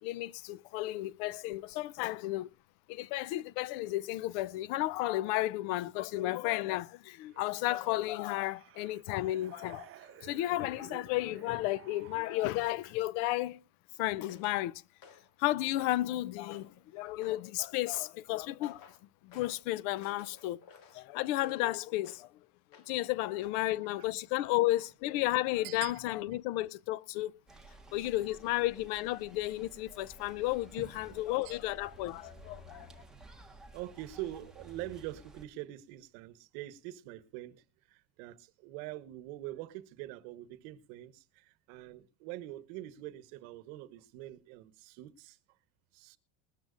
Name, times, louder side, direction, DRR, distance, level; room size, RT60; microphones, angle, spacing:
voice 1, 0.0-2.5 2.9-9.9 10.2-13.6 14.0-14.8 15.4-18.9 19.2-20.6 20.9-22.3 22.9-27.3 27.9-32.9, left 16 dB, 70° left, 0.7 m, -33 dB
sound 1, 7.3-13.1, right 13 dB, 35° right, 0.8 m, -55 dB
sound 2, 14.3-14.6 15.0-15.3 15.7-16.1 16.5-16.8 17.2-17.5 17.9-18.2 18.6-19.0 19.3-19.6 20.0-21.7 22.0-22.3 22.7-23.1 23.4-23.6, left 6 dB, 55° left, 2.3 m, -56 dB
sound 3, 27.5-35.4, right 1 dB, ahead, 1.5 m, -54 dB
voice 2, 33.7-37.6 37.9-45.4 45.9-46.2, right 15 dB, 75° right, 1.2 m, -44 dB
20.5 x 13.5 x 2.5 m
cardioid pair, 150°, 40 cm